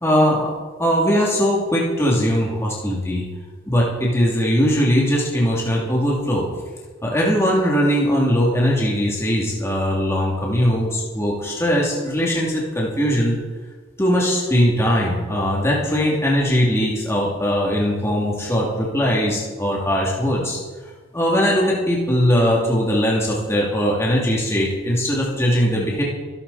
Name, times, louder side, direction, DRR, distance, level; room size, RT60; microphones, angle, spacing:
voice 1, 0.0-0.5 0.8-3.2 3.7-6.4 7.0-13.4 14.0-20.6 21.1-26.0, equal, 15° left, -4 dB, 2.8 m, -20 dB
25.5 x 12.5 x 4.2 m, 1.4 s
head